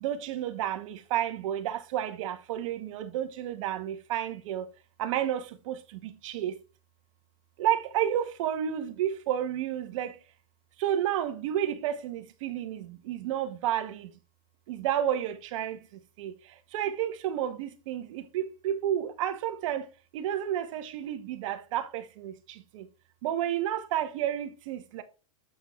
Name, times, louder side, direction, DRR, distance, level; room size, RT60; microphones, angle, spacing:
voice 1, 0.0-4.6 5.0-5.8 6.2-6.5 7.6-10.1 10.8-14.1 14.7-15.8 16.2-16.3 16.7-19.8 20.1-22.3 22.7-22.8 23.2-25.0, right 10 dB, 60° right, 1.2 m, -31 dB
8.4 x 7.1 x 2.4 m
hypercardioid pair, 130°, 18 cm